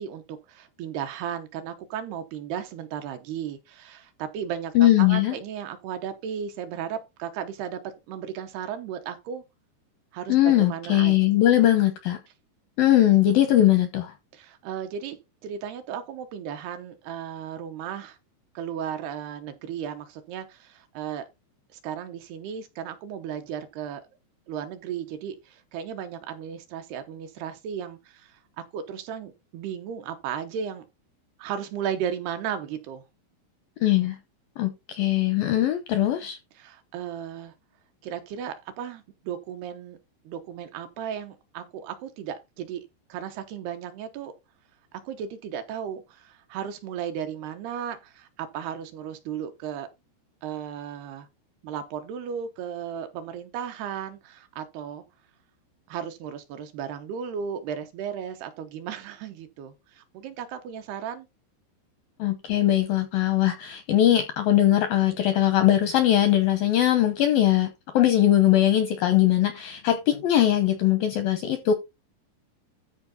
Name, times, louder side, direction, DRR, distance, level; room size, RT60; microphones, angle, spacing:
voice 1, 0.0-9.4 10.1-11.3 14.3-18.2 18.5-21.2 21.7-24.0 24.5-30.9 31.4-33.0 36.6-37.5 38.0-40.0 40.3-44.3 44.9-49.9 50.4-51.3 51.6-55.0 55.9-61.3, right 8 dB, 75° right, 2.6 m, -35 dB
voice 2, 4.8-5.4 10.3-12.2 12.8-14.1 33.8-34.2 34.6-36.4 62.2-67.7 67.9-71.7, left 12 dB, 85° left, 2.1 m, -20 dB
13.5 x 4.6 x 4.0 m
omnidirectional pair, 5.3 m